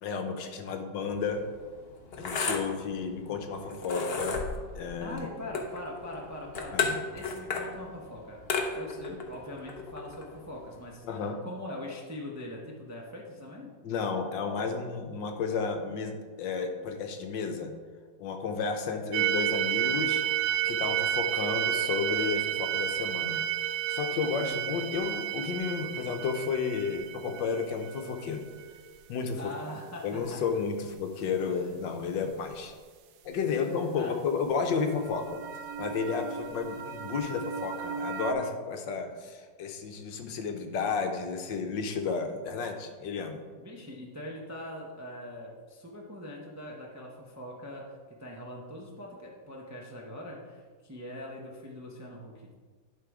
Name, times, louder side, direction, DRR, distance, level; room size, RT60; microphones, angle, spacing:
voice 1, 0.0-1.4 2.2-4.4 4.7-5.2 6.7-7.0 11.0-11.4 13.8-17.7 18.2-20.2 20.6-23.4 23.9-28.5 29.1-29.5 30.0-32.7 33.2-35.2 35.8-43.4, left 5 dB, 75° left, 5 dB, 1.5 m, -32 dB
sound 1, 1.1-10.9, left 4 dB, 50° left, 0.8 m, -35 dB
voice 2, 5.0-8.4 8.7-11.0 11.4-13.7 29.4-30.6 31.4-31.7 33.5-34.2 43.6-47.9 48.2-52.5, left 1 dB, 20° right, -2 dB, 0.5 m, -42 dB
sound 2, 19.1-28.7 34.8-38.3, right 10 dB, 75° right, 1.3 m, -32 dB
11.0 x 3.9 x 4.8 m, 1.5 s
omnidirectional pair, 2.0 m